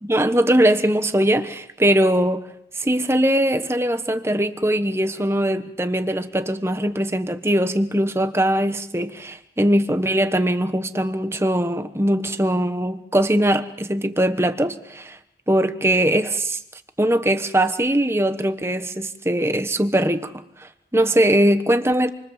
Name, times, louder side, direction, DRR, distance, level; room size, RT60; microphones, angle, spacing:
voice 1, 0.0-2.5 2.7-15.2 15.5-16.6 17.0-22.1, right 1 dB, 15° right, 9 dB, 1.2 m, -21 dB
28.5 x 24.0 x 7.5 m, 0.77 s
head